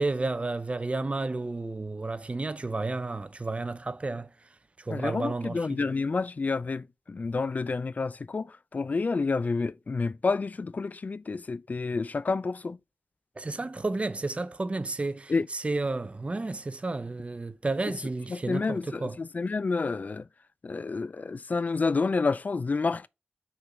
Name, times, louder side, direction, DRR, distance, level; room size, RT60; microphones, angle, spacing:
voice 1, 0.0-4.3 4.8-5.8 13.4-19.2, right 3 dB, 35° right, 0.7 m, -32 dB
voice 2, 4.9-12.8 15.3-15.5 18.3-20.3 20.6-23.1, left 4 dB, 50° left, 0.4 m, -29 dB
5.9 x 3.9 x 4.4 m
wide cardioid pair, 70°, 4 cm